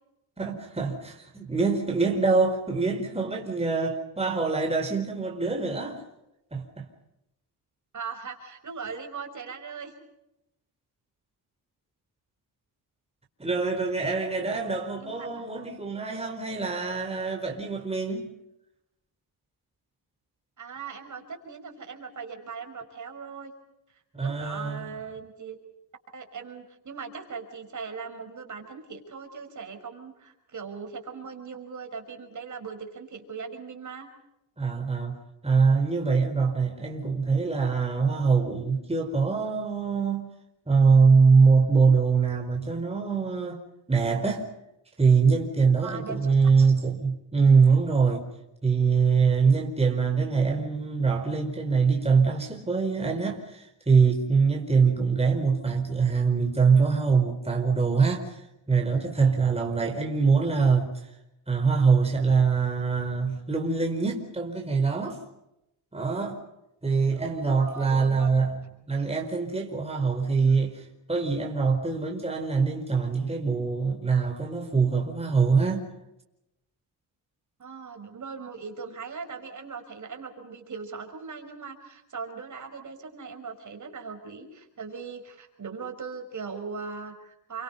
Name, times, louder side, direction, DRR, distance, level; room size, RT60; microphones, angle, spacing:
voice 1, 0.4-6.0 6.5-6.9 13.4-18.3 24.2-24.9 34.6-35.2 35.4-40.3 40.7-43.6 43.9-44.4 45.0-48.3 48.6-58.4 58.7-60.9 61.5-65.2 65.9-66.4 66.8-68.6 68.9-75.9, right 5 dB, 15° right, 4.7 m, -23 dB
voice 2, 7.9-9.9 15.0-15.3 20.6-23.5 24.2-25.6 26.1-34.1 45.8-46.3 67.1-67.2 67.6-68.3 77.6-87.6, right 5 dB, 45° right, 5.9 m, -39 dB
29.5 x 25.5 x 5.5 m
cardioid pair, 100°, 41 cm